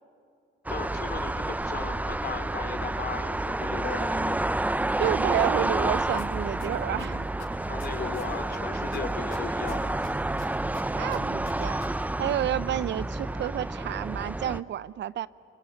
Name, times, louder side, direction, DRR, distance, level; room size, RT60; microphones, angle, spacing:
voice 1, 0.7-4.5 7.7-10.1, left 6 dB, 55° left, 2.7 m, -37 dB
sound 1, 0.7-14.6, right 2 dB, 10° right, 0.6 m, -29 dB
voice 2, 5.0-7.3 10.9-11.8 12.2-15.3, right 11 dB, 65° right, 0.6 m, -30 dB
sound 2, 6.2-6.3 6.6-8.6 8.9-11.9 12.1-12.2, left 9 dB, 80° left, 6.1 m, -46 dB
28.0 x 19.0 x 9.8 m
cardioid pair, 90°, 20 cm